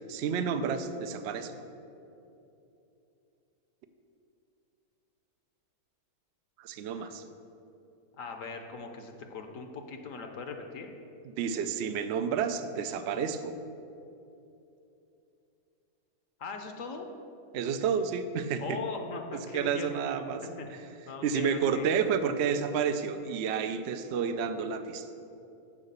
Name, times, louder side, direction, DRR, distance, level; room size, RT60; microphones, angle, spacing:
voice 1, 0.0-1.5 6.6-7.2 11.4-13.6 17.5-18.8 19.5-20.4 20.7-20.8 21.2-25.1, right 6 dB, 70° right, 9 dB, 0.6 m, -30 dB
voice 2, 6.9-7.2 8.2-11.0 16.4-17.1 18.6-19.9 20.4-21.9, left 5 dB, 65° left, 4 dB, 1.0 m, -40 dB
7.3 x 4.8 x 6.6 m, 2.8 s
omnidirectional pair, 1.6 m